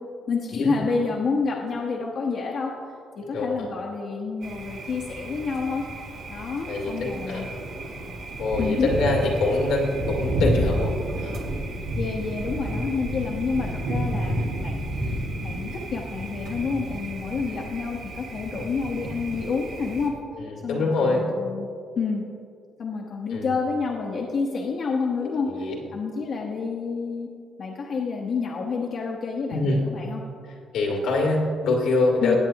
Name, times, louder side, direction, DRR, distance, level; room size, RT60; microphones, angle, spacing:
voice 1, 0.3-2.7 3.2-5.8 6.3-7.5 8.6-8.9 12.0-20.1 20.6-21.7 22.0-22.2 22.8-27.3 27.6-30.2 32.2-32.4, left 4 dB, 60° left, -1 dB, 1.0 m, -29 dB
voice 2, 3.3-3.7 6.7-7.6 8.4-11.4 17.5-17.6 20.4-21.2 23.3-23.5 25.2-25.8 29.5-29.8 30.7-32.4, left 2 dB, 85° left, -1 dB, 2.2 m, -25 dB
Thunder, 4.4-20.1, right 1 dB, 80° right, 1.8 m, -31 dB
18.0 x 8.1 x 2.9 m, 2.3 s
cardioid pair, 90°, 0 cm